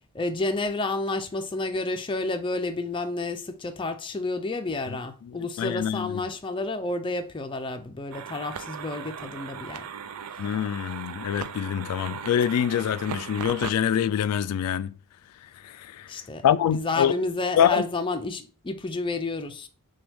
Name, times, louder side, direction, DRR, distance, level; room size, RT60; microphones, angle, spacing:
voice 1, 0.1-9.8 16.1-19.7, left 2 dB, 20° left, 0.5 m, -30 dB
voice 2, 5.2-6.2 10.4-14.9 15.6-16.1 16.4-17.1 17.6-17.9, left 9 dB, 90° left, 0.3 m, -25 dB
sound 1, 8.1-13.7, right 7 dB, 85° right, 0.4 m, -38 dB
6.0 x 2.3 x 3.4 m
head